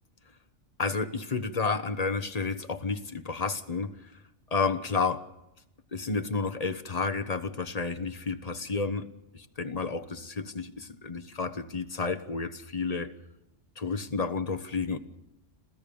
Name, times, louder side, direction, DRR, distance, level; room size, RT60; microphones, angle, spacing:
voice 1, 0.8-4.1 4.5-5.2 5.9-9.1 9.3-13.1 13.8-15.0, left 4 dB, 35° left, 10 dB, 1.2 m, -31 dB
27.0 x 15.5 x 7.0 m, 0.87 s
omnidirectional pair, 1.2 m